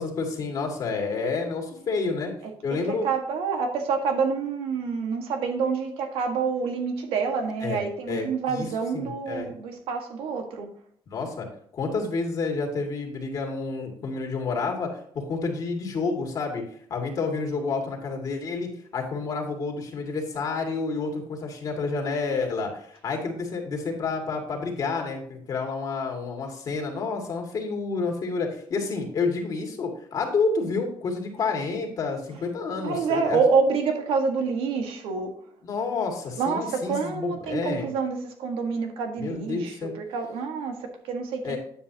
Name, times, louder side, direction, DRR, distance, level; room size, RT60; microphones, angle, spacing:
voice 1, 0.0-2.3 2.6-3.1 7.6-7.8 8.1-8.7 8.9-9.5 11.1-11.5 11.7-16.6 16.9-33.4 35.6-37.9 39.2-39.9 41.4-41.6, left 4 dB, 40° left, 1 dB, 2.1 m, -29 dB
voice 2, 2.4-10.7 32.8-35.3 36.4-41.6, right 5 dB, 80° right, 5 dB, 1.6 m, -27 dB
9.7 x 7.5 x 2.8 m, 0.63 s
cardioid pair, 165°, 9 cm